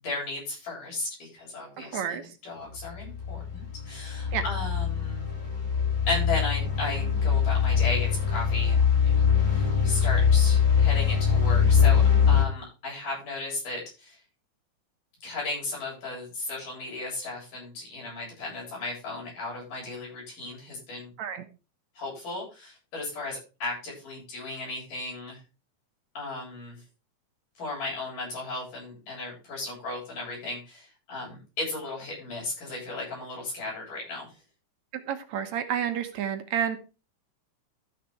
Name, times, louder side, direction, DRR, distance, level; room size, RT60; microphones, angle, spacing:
voice 1, 0.0-2.2 2.4-5.3 6.1-14.2 15.2-21.1 22.0-25.4 26.1-26.8 27.6-34.3, left 2 dB, 80° left, -4 dB, 9.7 m, -35 dB
voice 2, 1.8-2.2 4.3-4.4 21.2-21.4 34.9-36.8, right 8 dB, 70° right, 8 dB, 2.2 m, -30 dB
sound 1, 2.8-12.4, left 7 dB, 15° left, 2.9 m, -23 dB
13.0 x 6.7 x 4.6 m, 0.31 s
omnidirectional pair, 3.7 m